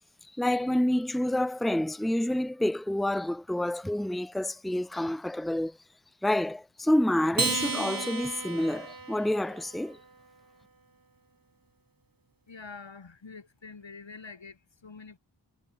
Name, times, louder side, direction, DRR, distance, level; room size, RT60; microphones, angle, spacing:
voice 1, 0.4-5.8 6.2-10.0, left 1 dB, ahead, 0.9 m, -28 dB
Acoustic guitar, 7.3-10.0, right 3 dB, 50° right, 3.7 m, -33 dB
voice 2, 12.5-15.2, left 4 dB, 85° left, 3.6 m, -46 dB
wide cardioid pair, 60°, 44 cm